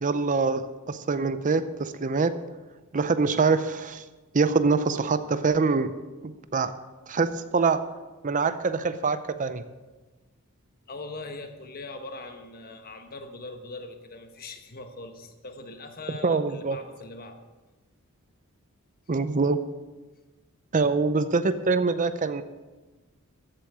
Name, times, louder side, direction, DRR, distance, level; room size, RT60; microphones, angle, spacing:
voice 1, 0.0-2.4 2.9-4.0 4.3-5.9 6.2-6.7 7.1-7.9 8.2-9.6 16.2-16.8 19.1-19.6 20.7-22.4, right 4 dB, 35° right, 12 dB, 0.6 m, -24 dB
voice 2, 10.9-17.4 20.8-20.9, left 2 dB, 45° left, 6 dB, 1.3 m, -41 dB
14.5 x 8.1 x 6.3 m, 1.2 s
head